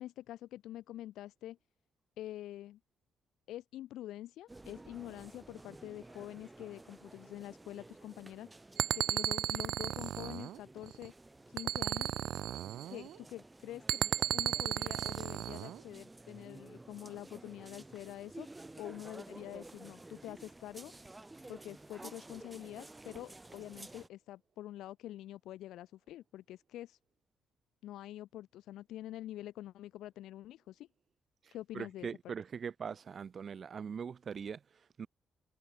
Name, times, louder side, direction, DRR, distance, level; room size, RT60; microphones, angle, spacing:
voice 1, 0.0-1.6 2.2-2.8 3.5-8.5 8.9-11.1 11.5-12.2 12.9-14.0 14.3-18.5 18.8-20.9 21.5-27.0 27.8-30.9 31.5-32.1, left 13 dB, 85° left, 1.2 m, -46 dB
sound 1, 4.5-24.1, right 2 dB, 15° right, 2.7 m, -53 dB
sound 2, 8.8-11.1 11.6-13.2 13.9-15.8, right 12 dB, 80° right, 0.5 m, -35 dB
voice 2, 31.4-35.1, right 6 dB, 45° right, 2.1 m, -42 dB
cardioid pair, 90°, 0 cm